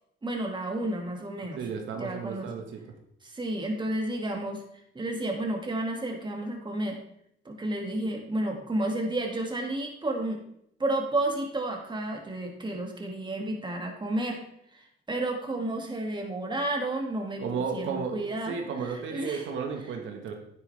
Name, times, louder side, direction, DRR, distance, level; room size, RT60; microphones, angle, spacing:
voice 1, 0.2-1.6 1.9-2.5 3.2-4.6 4.9-7.0 7.5-10.4 10.8-14.4 14.7-14.8 15.1-18.5 18.8-19.5, right 1 dB, 25° right, 2 dB, 2.2 m, -31 dB
voice 2, 1.5-2.8 17.4-20.3, right 5 dB, 75° right, 3 dB, 1.5 m, -33 dB
10.0 x 9.1 x 3.4 m, 0.74 s
cardioid pair, 90°, 20 cm